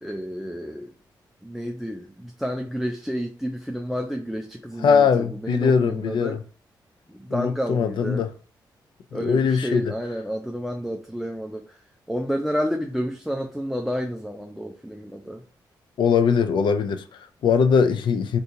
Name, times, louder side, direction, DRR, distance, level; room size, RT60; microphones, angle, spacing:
voice 1, 0.0-0.9 1.4-6.4 7.1-8.2 9.1-11.8 12.1-15.4, equal, ahead, 0.4 m, -30 dB
voice 2, 4.8-6.4 7.3-8.3 9.1-9.9 16.0-18.4, left 6 dB, 70° left, 0.4 m, -21 dB
2.7 x 2.6 x 3.7 m
cardioid pair, 80°, 8 cm